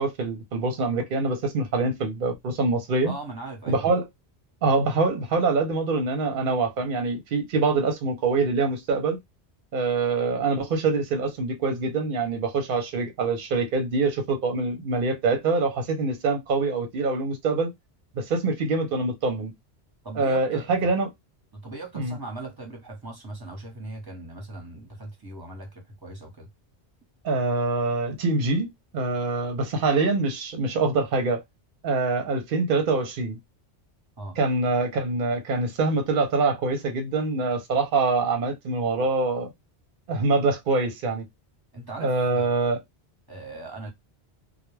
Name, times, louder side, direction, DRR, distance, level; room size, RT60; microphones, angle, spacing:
voice 1, 0.0-3.1 3.7-4.1 4.6-9.2 9.7-17.7 18.1-19.5 20.2-21.1 21.9-22.1 27.2-31.4 31.8-33.4 34.4-39.5 40.1-41.2 42.0-42.8, right 3 dB, 55° right, 0.7 m, -25 dB
voice 2, 3.0-3.9 20.0-20.7 21.5-26.5 34.2-34.4 41.7-42.5 43.3-43.9, right 2 dB, 25° right, 0.8 m, -39 dB
2.2 x 2.1 x 3.1 m
omnidirectional pair, 1.1 m